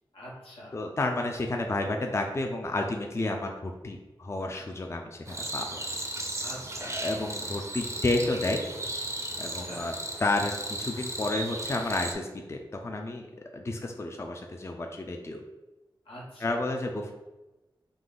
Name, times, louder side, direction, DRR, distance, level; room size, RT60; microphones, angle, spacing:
voice 1, 0.1-0.8 6.4-7.0 9.4-9.9 16.0-16.6, equal, 90° left, -4 dB, 1.2 m, -44 dB
voice 2, 0.7-5.8 6.9-8.6 9.4-9.9 10.2-13.3 13.5-15.4 16.4-17.1, left 2 dB, 30° left, 3 dB, 0.4 m, -31 dB
sound 1, 5.3-12.1, right 1 dB, 35° right, 0.5 m, -35 dB
3.8 x 2.7 x 3.9 m, 1.1 s
wide cardioid pair, 75°, 9 cm